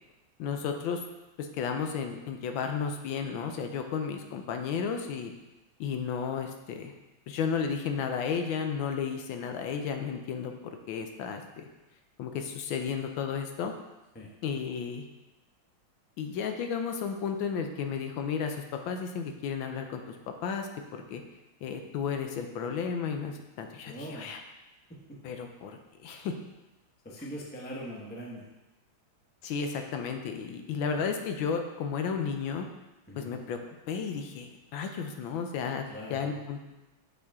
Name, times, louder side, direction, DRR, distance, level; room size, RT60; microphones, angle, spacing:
voice 1, 0.4-1.0 1.4-5.3 5.8-6.9 7.3-11.7 12.2-13.7 14.4-15.0 16.2-20.1 20.4-21.2 21.6-24.4 25.2-26.4 29.4-32.7 33.2-33.6 33.9-35.8 36.1-36.6, left 6 dB, 75° left, 5 dB, 1.4 m, -33 dB
voice 2, 23.8-24.3 24.9-25.2 27.0-28.5 33.1-33.4 35.9-36.3, equal, 10° left, -3 dB, 0.4 m, -42 dB
6.6 x 5.5 x 3.5 m, 1.0 s
omnidirectional pair, 2.2 m